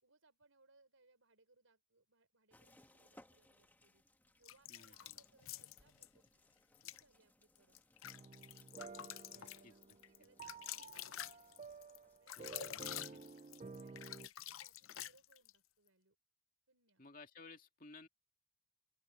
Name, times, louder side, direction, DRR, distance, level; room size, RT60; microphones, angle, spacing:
voice 1, 0.0-4.0 4.4-6.4 6.8-7.8 9.3-11.5 12.2-16.2 16.7-17.0, right 3 dB, 80° right, 4.8 m, -73 dB
sound 1, 2.5-12.2, left 1 dB, 10° left, 1.7 m, -69 dB
sound 2, 4.4-6.1 6.7-7.0 7.5-15.6, left 13 dB, 80° left, 0.6 m, -49 dB
voice 2, 4.7-5.2 9.3-9.7 12.4-13.2 17.0-18.1, left 3 dB, 40° left, 2.4 m, -58 dB
sound 3, 8.0-14.3, right 4 dB, 30° right, 0.3 m, -53 dB
open air
head